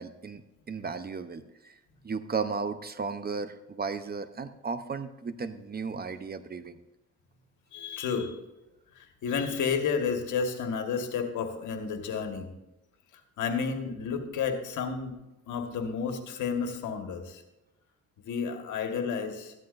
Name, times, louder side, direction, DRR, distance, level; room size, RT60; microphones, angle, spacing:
voice 1, 0.0-1.8 2.0-6.8, right 5 dB, 30° right, 10 dB, 0.8 m, -35 dB
voice 2, 7.7-8.4 8.9-12.5 13.4-15.1 15.5-17.4 18.2-19.5, left 6 dB, 80° left, 5 dB, 1.7 m, -31 dB
14.5 x 11.5 x 2.6 m, 0.95 s
cardioid pair, 90°, 30 cm